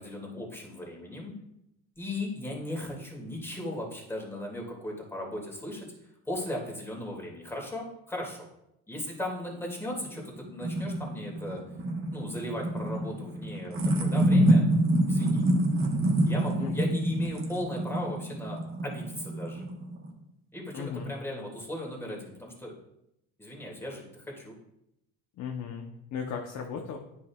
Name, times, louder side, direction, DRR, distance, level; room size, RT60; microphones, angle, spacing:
voice 1, 0.0-1.3 2.0-8.5 8.9-11.6 12.1-14.6 15.0-15.4 16.3-19.7 20.5-22.7 23.4-24.6, left 1 dB, 5° left, -2 dB, 2.3 m, -37 dB
sound 1, 10.0-20.1, right 1 dB, 35° right, 1.3 m, -27 dB
voice 2, 20.7-21.1 25.4-25.8 26.1-27.0, left 6 dB, 50° left, 2 dB, 0.9 m, -35 dB
9.6 x 5.3 x 2.4 m, 0.82 s
supercardioid pair, 90°, 35 cm